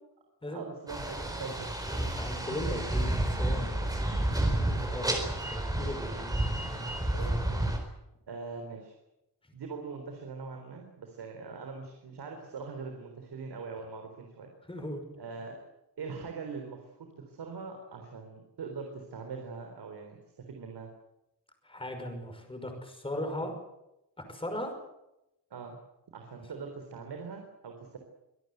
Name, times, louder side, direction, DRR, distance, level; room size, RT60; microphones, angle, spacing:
voice 1, 0.5-2.3 4.1-4.2 6.8-6.9 7.1-7.6 8.3-9.0 9.5-14.5 15.2-15.6 16.0-20.9 25.5-25.8 26.1-28.0, right 4 dB, 75° right, 4 dB, 3.9 m, -42 dB
sound 1, 0.9-7.8, right 1 dB, 10° right, 4.4 m, -30 dB
voice 2, 2.1-3.9 4.3-6.3 6.9-7.0 14.7-15.0 21.6-23.5 24.3-24.7, left 1 dB, 15° left, 5 dB, 5.4 m, -38 dB
25.0 x 17.5 x 8.1 m, 0.90 s
wide cardioid pair, 180°, 40 cm